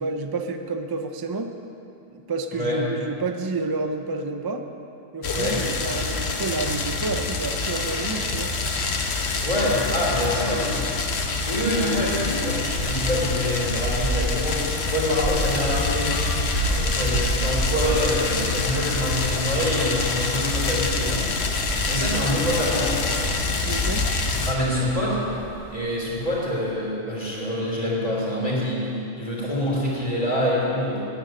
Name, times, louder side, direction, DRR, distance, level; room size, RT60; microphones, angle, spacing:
voice 1, 0.0-1.5 2.1-4.6 5.1-8.5 23.7-24.1, right 3 dB, 25° right, 6 dB, 0.5 m, -29 dB
sound 1, 5.2-24.5, left 3 dB, 60° left, 1.2 m, -26 dB
voice 2, 5.3-5.6 9.4-10.9 11.5-14.6 14.9-16.1 16.7-21.2 21.9-23.1 24.4-25.2 25.7-31.1, left 1 dB, 30° left, -6 dB, 3.7 m, -26 dB
sound 2, 11.3-26.7, right 2 dB, 80° right, 2.3 m, -33 dB
10.5 x 9.7 x 9.2 m, 2.9 s
omnidirectional pair, 1.3 m